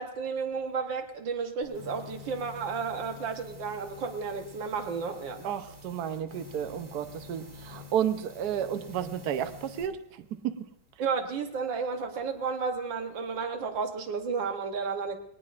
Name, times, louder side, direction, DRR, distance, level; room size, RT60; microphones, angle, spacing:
voice 1, 0.0-5.5 11.0-15.2, right 5 dB, 80° right, 6 dB, 1.8 m, -32 dB
sound 1, 1.6-9.9, left 4 dB, 20° right, 2.8 m, -48 dB
voice 2, 5.4-10.6, right 9 dB, 65° right, 8 dB, 1.2 m, -32 dB
20.5 x 19.0 x 2.5 m, 0.81 s
omnidirectional pair, 2.0 m